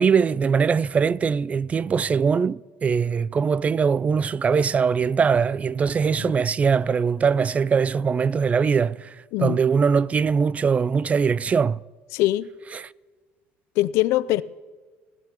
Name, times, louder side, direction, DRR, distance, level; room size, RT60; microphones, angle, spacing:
voice 1, 0.0-11.8 12.7-12.9, right 6 dB, 30° right, 0.3 m, -21 dB
voice 2, 12.1-12.5 13.8-14.4, left 16 dB, 75° left, 0.4 m, -22 dB
26.0 x 12.5 x 2.9 m
supercardioid pair, 95°, 5 cm